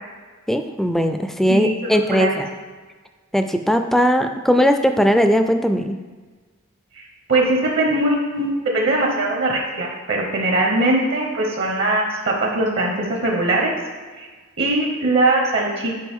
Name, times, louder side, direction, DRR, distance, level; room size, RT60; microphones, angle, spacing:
voice 1, 0.5-2.5 3.3-6.0, equal, ahead, 7 dB, 0.3 m, -18 dB
voice 2, 1.5-2.3 7.3-13.7 14.2-14.3 14.6-16.0, right 2 dB, 60° right, 0 dB, 1.0 m, -21 dB
9.1 x 5.0 x 3.6 m, 1.4 s
head